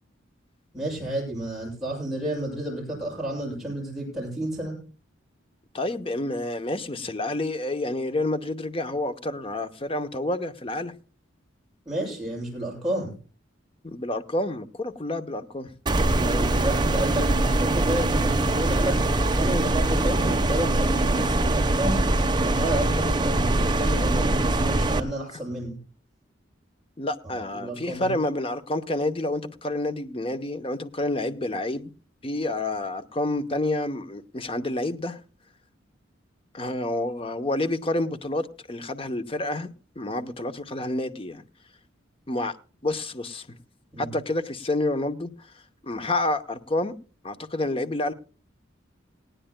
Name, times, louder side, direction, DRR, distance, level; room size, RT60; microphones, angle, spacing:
voice 1, 0.7-4.8 11.9-13.1 16.1-22.0 22.4-25.8 27.5-28.2 43.9-44.1, right 1 dB, ahead, 7.5 m, -31 dB
voice 2, 5.7-10.9 13.8-15.7 27.0-31.9 32.2-35.2 36.5-39.7 40.0-41.4 42.3-42.5 42.8-43.5 44.0-45.3 45.8-46.9 47.2-48.1, left 2 dB, 30° left, 0.8 m, -29 dB
sound 1, 15.9-25.0, right 2 dB, 20° right, 0.9 m, -23 dB
19.0 x 17.5 x 2.2 m
head